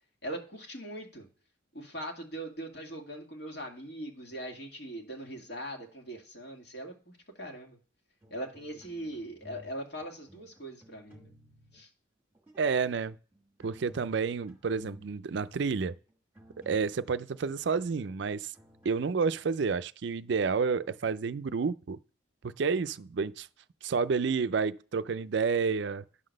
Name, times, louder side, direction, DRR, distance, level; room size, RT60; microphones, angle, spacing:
voice 1, 0.2-1.3 1.7-7.8 8.3-11.3 11.7-11.9, right 1 dB, 55° left, 2.0 m, -41 dB
sound 1, 8.2-9.7 10.0-11.8 12.3-12.7 13.3-18.9, equal, 10° right, 1.6 m, -55 dB
voice 2, 12.6-13.2 13.6-15.9 16.7-18.5 18.8-22.0 22.4-23.5 23.8-26.0, right 5 dB, 60° right, 0.4 m, -30 dB
9.8 x 3.9 x 6.4 m
head